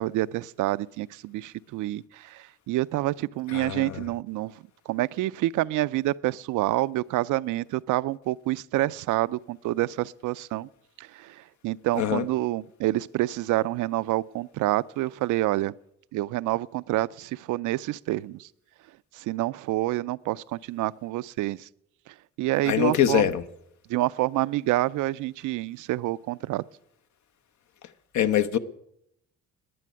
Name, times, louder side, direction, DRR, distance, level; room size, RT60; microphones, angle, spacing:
voice 1, 0.0-4.5 4.9-10.7 11.0-15.7 16.1-18.5 19.1-21.7 22.4-23.3 23.9-26.6, right 16 dB, 80° right, 0.5 m, -28 dB
voice 2, 3.5-4.0 12.0-12.2 22.7-23.4 28.1-28.6, left 10 dB, 70° left, 0.9 m, -23 dB
11.0 x 9.3 x 9.6 m
cardioid pair, 90°, 30 cm